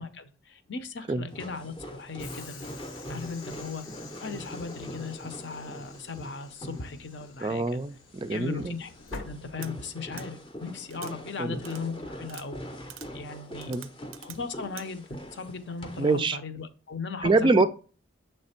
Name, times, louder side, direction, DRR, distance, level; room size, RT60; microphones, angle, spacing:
voice 1, 0.0-2.6 3.1-3.9 4.2-7.8 8.3-8.9 9.2-12.6 13.1-13.7 14.2-17.7, left 4 dB, 60° left, 10 dB, 0.7 m, -38 dB
sound 1, 1.3-16.2, equal, 25° left, 0.6 m, -43 dB
Train / Sliding door, 2.2-10.2, left 4 dB, 85° left, 1.0 m, -48 dB
voice 2, 7.4-8.7 11.4-11.6 13.7-13.9 16.0-16.4 17.2-17.6, right 3 dB, 25° right, 11 dB, 0.3 m, -25 dB
sound 2, 9.6-9.7 10.2-10.3 10.9-11.1 11.6-11.8 12.3-12.5 12.9-13.1 13.6-14.4 14.8-14.9, right 13 dB, 85° right, 0.5 m, -44 dB
7.1 x 3.3 x 4.3 m, 0.36 s
head